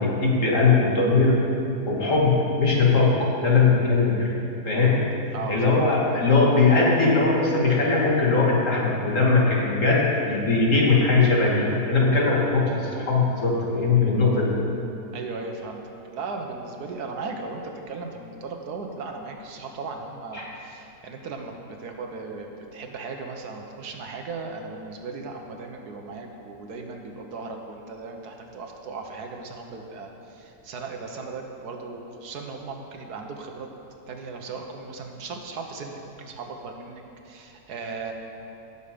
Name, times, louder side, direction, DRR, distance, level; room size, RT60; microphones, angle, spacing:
voice 1, 0.0-1.3 1.9-3.1 3.4-4.3 4.7-4.9 5.5-14.5 20.3-20.4, left 3 dB, 55° left, -4 dB, 2.4 m, -20 dB
voice 2, 5.3-6.3 15.1-15.8 16.1-33.7 34.1-38.1, right 4 dB, 80° right, 3 dB, 1.6 m, -37 dB
18.5 x 7.0 x 5.2 m, 2.8 s
omnidirectional pair, 1.7 m